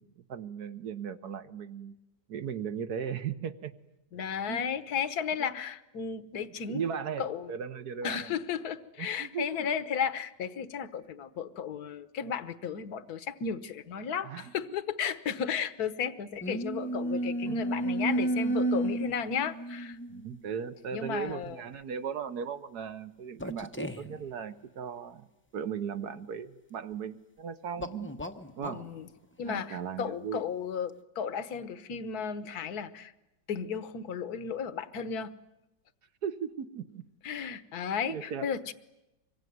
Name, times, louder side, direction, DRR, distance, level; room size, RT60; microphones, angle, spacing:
voice 1, 0.0-2.0 2.3-3.7 4.5-4.6 6.7-8.3 9.0-9.6 14.2-14.4 17.4-17.9 20.1-25.3 25.5-28.1 28.6-28.8 29.4-30.4 36.2-37.0 38.1-38.5, right 7 dB, 65° right, 11 dB, 1.6 m, -37 dB
voice 2, 4.1-6.8 7.2-7.5 8.0-20.0 20.9-21.6 28.7-29.1 29.4-33.1 33.5-35.3 37.2-38.7, left 7 dB, 60° left, 13 dB, 1.6 m, -34 dB
sound 1, 16.4-20.4 21.3-21.4 23.4-24.2 27.8-28.9, right 1 dB, 10° left, 0.7 m, -32 dB
25.0 x 23.0 x 9.5 m, 0.96 s
omnidirectional pair, 1.9 m